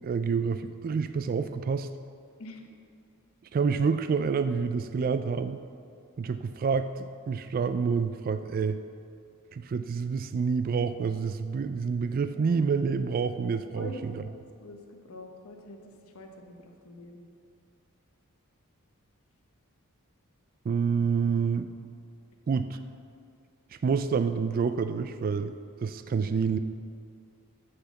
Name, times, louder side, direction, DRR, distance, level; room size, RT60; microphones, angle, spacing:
voice 1, 0.0-1.9 3.5-5.6 6.2-8.8 9.5-14.2 20.6-21.7 22.5-22.8 23.7-25.5 25.8-26.6, right 5 dB, 40° right, 10 dB, 0.3 m, -28 dB
voice 2, 13.7-14.3 14.6-17.2, left 1 dB, 70° left, 3 dB, 1.0 m, -45 dB
7.8 x 6.5 x 7.1 m, 2.4 s
head